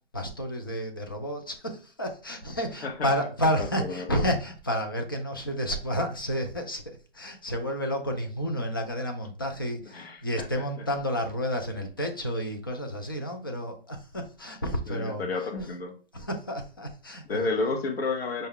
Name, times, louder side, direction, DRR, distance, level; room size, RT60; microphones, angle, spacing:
voice 1, 0.1-15.7 16.1-17.5, equal, 25° left, 0.4 m, -31 dB
voice 2, 9.9-10.5 14.9-16.0 17.3-18.5, left 3 dB, 80° left, 0.9 m, -31 dB
5.2 x 2.2 x 3.6 m
hypercardioid pair, 160°, 30 cm